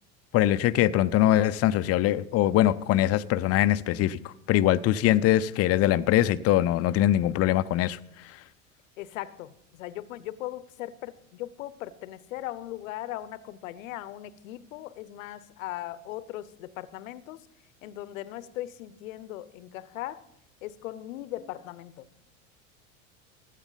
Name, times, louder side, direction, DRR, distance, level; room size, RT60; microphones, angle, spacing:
voice 1, 0.3-8.0, left 13 dB, 40° left, 0.5 m, -22 dB
voice 2, 9.0-17.4 17.8-20.2 20.6-22.0, left 14 dB, 75° left, 0.8 m, -38 dB
15.0 x 10.5 x 4.0 m
hypercardioid pair, 85°, 40 cm